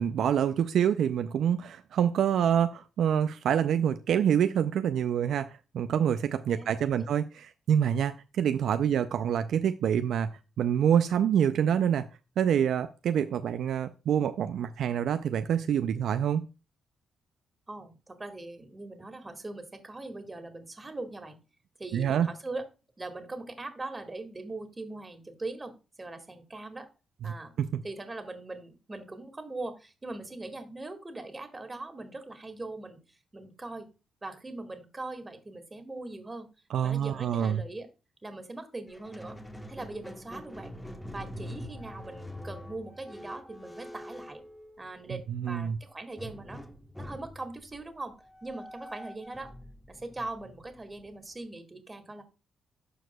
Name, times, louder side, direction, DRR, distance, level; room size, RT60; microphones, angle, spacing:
voice 1, 0.0-7.3 7.7-10.3 10.6-12.1 12.4-16.5 21.9-22.3 27.6-27.7 36.7-37.6 45.3-45.8, right 9 dB, 75° right, 0.3 m, -26 dB
voice 2, 6.5-7.1 17.7-21.4 21.8-22.6 23.0-26.9 27.2-27.5 27.8-33.9 34.2-36.5 36.8-37.9 38.2-39.4 39.7-40.7 41.1-44.4 44.8-46.6 47.0-48.1 48.4-49.5 49.9-52.2, right 2 dB, 25° right, 1.8 m, -41 dB
Squeak, 38.9-45.2 46.2-51.3, left 1 dB, 10° left, 1.1 m, -45 dB
12.5 x 4.7 x 2.2 m
supercardioid pair, 55°, 0 cm